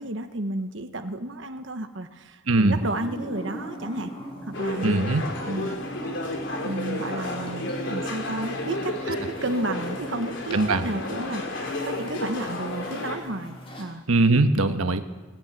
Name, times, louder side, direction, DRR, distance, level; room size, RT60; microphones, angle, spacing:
voice 1, 0.0-4.1 4.4-5.1 5.5-5.8 6.6-14.0, right 1 dB, 60° right, 6 dB, 1.3 m, -32 dB
voice 2, 2.5-2.8 4.8-5.2 10.5-10.9 14.1-15.0, right 2 dB, 90° right, 8 dB, 1.4 m, -21 dB
sound 1, 2.7-13.8, equal, 25° left, 4.5 m, -40 dB
sound 2, 4.5-13.2, left 1 dB, 55° left, 3.8 m, -32 dB
20.5 x 18.0 x 9.2 m, 1.2 s
head